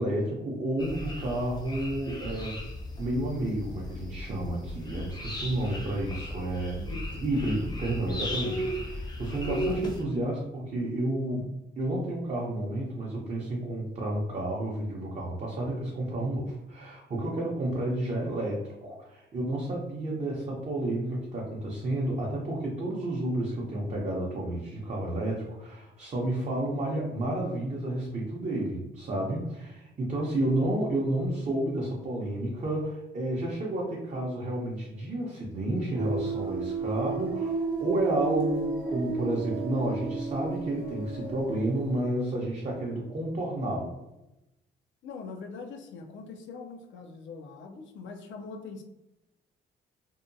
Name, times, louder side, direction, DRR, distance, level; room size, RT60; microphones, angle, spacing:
voice 1, 0.0-2.6 3.0-6.8 7.2-11.5 11.8-44.0, right 1 dB, 35° right, -4 dB, 0.6 m, -31 dB
sound 1, 0.8-10.0, equal, 20° left, 0.6 m, -36 dB
voice 2, 6.8-7.3 30.2-30.5 45.0-48.8, left 4 dB, 70° left, 5 dB, 0.5 m, -42 dB
sound 2, 36.0-42.1, right 4 dB, 80° right, 0.6 m, -33 dB
2.7 x 2.2 x 2.5 m, 0.93 s
cardioid pair, 90°, 20 cm